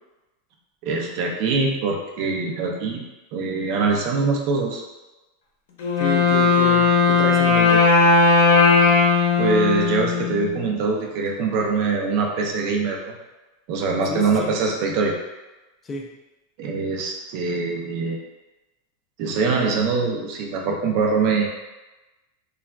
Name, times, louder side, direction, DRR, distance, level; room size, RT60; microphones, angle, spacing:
voice 1, 0.8-3.0 3.3-4.8 8.8-8.9 9.4-13.1 13.7-15.1 16.6-18.2 19.2-21.5, right 4 dB, 50° right, 0 dB, 0.5 m, -23 dB
Wind instrument woodwind instrument, 5.8-10.7, left 4 dB, 80° left, 0.6 m, -17 dB
voice 2, 6.0-7.9 14.1-14.5 15.8-16.1, left 2 dB, 20° left, 0 dB, 0.4 m, -30 dB
3.3 x 2.3 x 2.2 m, 1.1 s
supercardioid pair, 150°, 0 cm